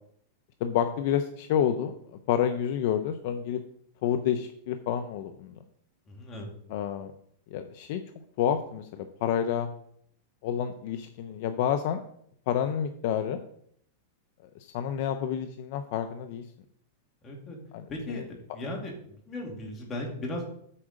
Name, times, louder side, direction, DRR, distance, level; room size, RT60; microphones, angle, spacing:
voice 1, 0.6-1.9 2.3-3.6 4.0-5.5 6.7-7.1 7.5-8.0 8.4-9.7 10.4-12.0 12.5-13.4 14.6-16.4 17.7-18.3, left 9 dB, 55° left, 8 dB, 0.7 m, -29 dB
voice 2, 6.1-6.5 17.2-17.6 17.9-18.2 18.5-20.5, left 1 dB, 20° left, 0 dB, 2.4 m, -36 dB
8.6 x 4.9 x 6.5 m, 0.66 s
supercardioid pair, 150°, 0 cm